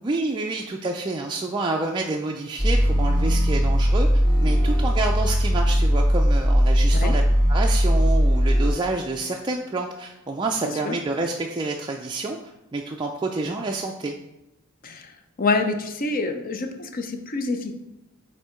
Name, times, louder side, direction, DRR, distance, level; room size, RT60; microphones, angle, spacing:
voice 1, 0.0-7.2 7.5-14.1, right 3 dB, 20° right, 1 dB, 0.3 m, -28 dB
sound 1, 2.6-8.7, equal, 20° left, 1.1 m, -19 dB
voice 2, 10.6-10.9 14.8-15.1 15.4-17.7, left 3 dB, 40° left, 6 dB, 0.6 m, -26 dB
7.9 x 2.7 x 4.4 m, 0.92 s
head